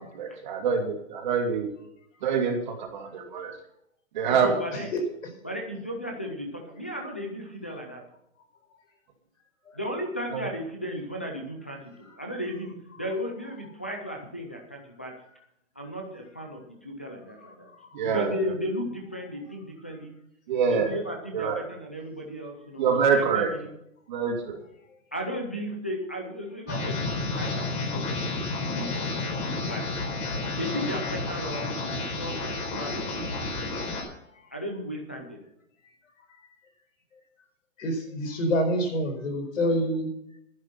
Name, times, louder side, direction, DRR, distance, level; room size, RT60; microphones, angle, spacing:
voice 1, 0.0-1.7 2.2-3.5 4.1-4.5 10.3-10.4 17.9-18.3 20.5-21.0 21.3-21.6 22.8-23.5 24.1-24.6, right 6 dB, 35° right, 3 dB, 2.4 m, -25 dB
voice 2, 4.3-4.9 5.4-8.0 9.7-15.1 15.8-17.7 18.0-20.1 20.7-23.7 25.1-29.8 30.6-33.4 34.5-35.4, equal, 10° left, 2 dB, 0.4 m, -35 dB
sound 1, 26.7-34.0, left 3 dB, 30° left, 4.6 m, -31 dB
voice 3, 37.8-40.1, equal, 70° left, 5 dB, 4.8 m, -26 dB
11.5 x 11.0 x 5.8 m, 0.77 s
hypercardioid pair, 175°, 39 cm